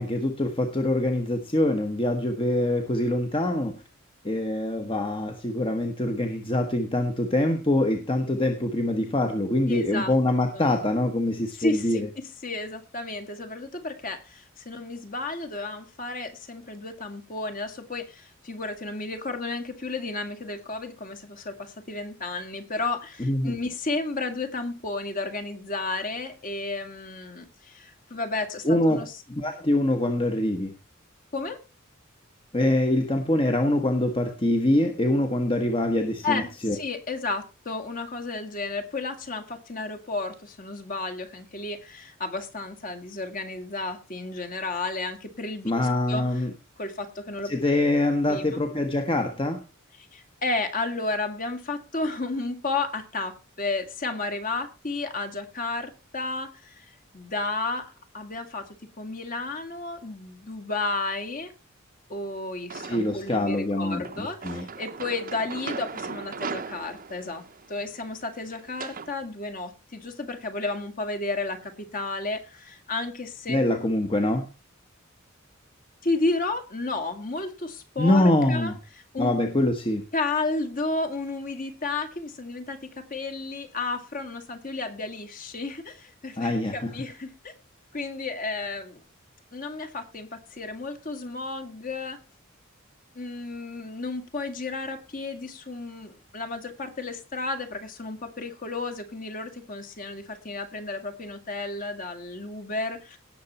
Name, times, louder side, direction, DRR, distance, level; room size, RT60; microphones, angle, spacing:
voice 1, 0.0-3.8 4.2-12.1 23.2-23.5 28.6-29.0 29.3-30.7 32.5-36.8 45.6-46.5 47.4-49.6 62.8-64.7 73.5-74.5 78.0-78.7 79.2-80.0 86.4-86.9, left 1 dB, 25° left, 6 dB, 1.3 m, -24 dB
voice 2, 9.7-10.1 10.5-10.7 11.6-12.0 12.4-29.1 31.3-31.6 36.2-46.2 46.8-47.5 48.3-48.6 50.1-58.7 59.0-61.5 62.1-67.4 67.7-73.6 76.0-78.7 79.1-79.3 80.1-87.5 87.9-89.0 89.5-92.2 93.2-103.2, left 3 dB, 40° left, 7 dB, 2.1 m, -32 dB
sound 1, 62.7-63.3 64.0-69.1, right 5 dB, 40° right, 0.9 m, -38 dB
18.0 x 6.9 x 4.3 m, 0.29 s
head